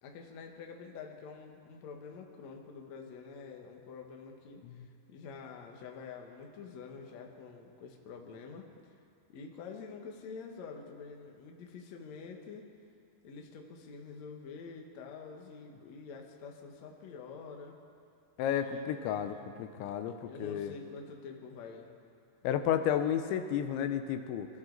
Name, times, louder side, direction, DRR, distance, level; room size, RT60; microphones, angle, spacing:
voice 1, 0.0-8.7 9.3-12.7 13.2-17.8 18.6-19.4 19.9-21.9, left 5 dB, 65° left, 2 dB, 1.7 m, -47 dB
voice 2, 18.4-20.7 22.4-24.5, left 9 dB, 85° left, 8 dB, 3.1 m, -32 dB
25.0 x 14.5 x 4.0 m, 2.4 s
omnidirectional pair, 5.2 m